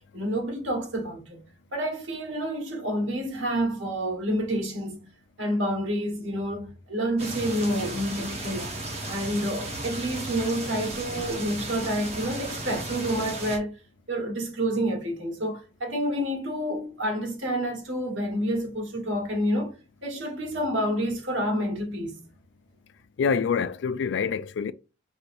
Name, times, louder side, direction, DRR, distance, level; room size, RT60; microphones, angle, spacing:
voice 1, 0.1-1.4 1.7-5.1 5.4-8.8 9.1-13.8 14.1-19.7 20.0-22.2, equal, 85° right, 1.5 m, -28 dB
sound 1, 7.2-13.6, right 1 dB, 35° right, 1.0 m, -35 dB
voice 2, 23.2-24.7, left 6 dB, 70° left, 0.3 m, -26 dB
5.1 x 3.1 x 2.6 m
head